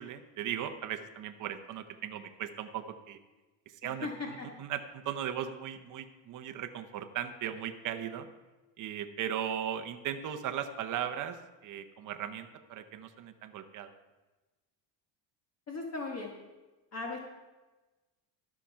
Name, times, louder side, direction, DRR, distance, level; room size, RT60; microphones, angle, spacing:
voice 1, 0.0-3.2 3.8-8.3 8.8-11.4 11.6-13.9, right 9 dB, 40° right, 8 dB, 0.8 m, -37 dB
voice 2, 3.8-4.5 15.7-16.3 16.9-17.2, left 3 dB, 30° left, 1 dB, 1.3 m, -38 dB
12.5 x 5.9 x 5.7 m, 1.2 s
cardioid pair, 130°, 50 cm